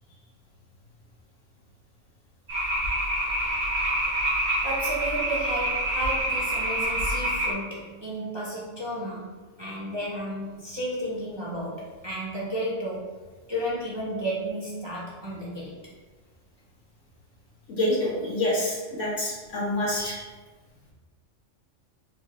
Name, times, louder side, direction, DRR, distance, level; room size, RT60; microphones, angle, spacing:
sound 1, 2.5-7.5, right 1 dB, 80° right, 1.9 m, -27 dB
voice 1, 4.6-9.3 9.6-13.1 13.5-15.7, right 1 dB, 30° right, -7 dB, 0.6 m, -32 dB
voice 2, 17.7-20.2, left 1 dB, 80° left, -6 dB, 1.5 m, -27 dB
4.6 x 2.5 x 3.0 m, 1.3 s
omnidirectional pair, 1.3 m